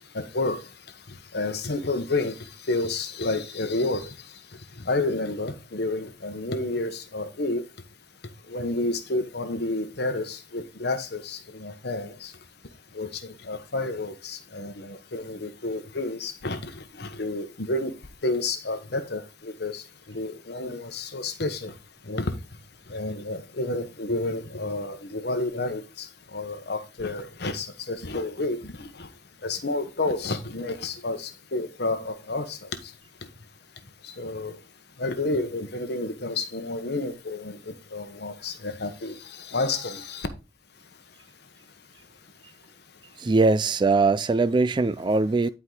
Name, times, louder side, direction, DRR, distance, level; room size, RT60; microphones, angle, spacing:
voice 1, 0.1-0.7 1.1-7.6 8.5-12.3 12.9-17.9 18.2-21.7 22.0-22.4 22.9-29.1 29.4-32.9 34.0-34.6 35.0-40.3, left 2 dB, 60° left, 1.2 m, -30 dB
voice 2, 43.2-45.5, right 3 dB, 25° right, 0.3 m, -21 dB
11.0 x 4.8 x 3.9 m
head